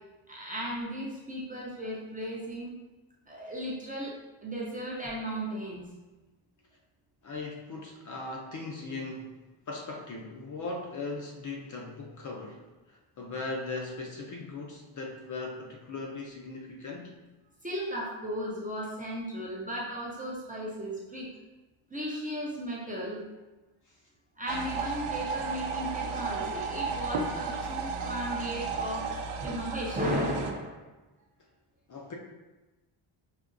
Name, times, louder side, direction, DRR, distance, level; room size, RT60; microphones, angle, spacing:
voice 1, 0.3-2.7 3.3-5.8 17.6-21.3 21.9-23.2 24.4-29.1 29.4-30.8, equal, 20° right, -5 dB, 0.4 m, -35 dB
voice 2, 7.2-9.3 9.7-12.6 12.9-17.2 31.9-32.1, left 3 dB, 40° left, 0 dB, 0.4 m, -38 dB
sound 1, 24.5-30.5, right 4 dB, 80° right, 0.6 m, -34 dB
5.0 x 2.7 x 2.5 m, 1.1 s
wide cardioid pair, 175°, 50 cm